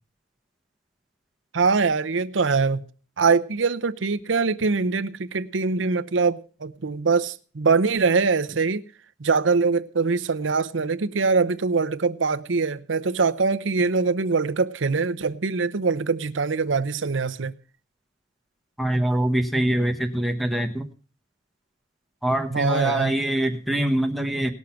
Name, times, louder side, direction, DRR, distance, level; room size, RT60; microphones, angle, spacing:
voice 1, 1.5-2.8 3.2-8.8 9.2-17.5 22.5-23.1, right 4 dB, 80° right, 0.7 m, -23 dB
voice 2, 18.8-20.9 22.2-24.5, right 1 dB, ahead, 1.1 m, -24 dB
18.5 x 6.5 x 5.7 m
head